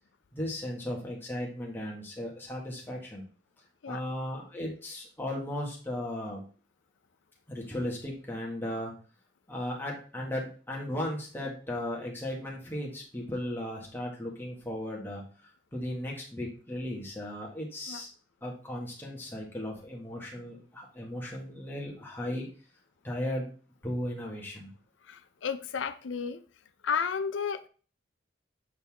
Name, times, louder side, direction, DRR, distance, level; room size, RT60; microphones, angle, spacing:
voice 1, 0.3-3.2 3.9-6.4 7.5-8.9 9.5-15.2 15.7-18.1 18.4-22.5 23.0-23.5 23.8-24.7, left 1 dB, 10° left, -2 dB, 1.8 m, -36 dB
voice 2, 25.0-26.4 26.8-27.7, left 6 dB, 90° left, 10 dB, 0.5 m, -32 dB
7.9 x 4.1 x 3.6 m, 0.39 s
head